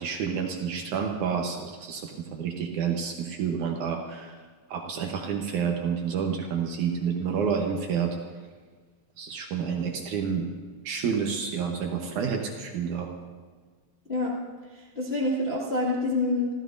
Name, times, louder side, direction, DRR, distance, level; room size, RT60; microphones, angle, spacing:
voice 1, 0.0-4.4 4.7-8.2 9.2-10.5 10.8-13.1, right 6 dB, 75° right, 2 dB, 1.8 m, -29 dB
voice 2, 14.7-16.5, left 2 dB, 45° left, -5 dB, 0.8 m, -27 dB
27.5 x 14.5 x 2.6 m, 1.5 s
omnidirectional pair, 4.8 m